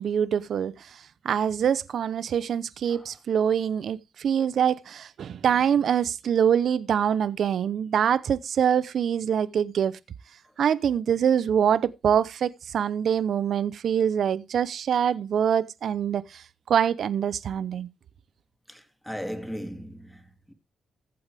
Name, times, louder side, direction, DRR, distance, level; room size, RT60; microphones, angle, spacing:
voice 1, 0.0-10.0 10.6-17.9, right 8 dB, 65° right, 0.7 m, -25 dB
voice 2, 18.7-20.5, equal, ahead, 2.2 m, -37 dB
15.0 x 8.7 x 3.3 m
cardioid pair, 130°, 0 cm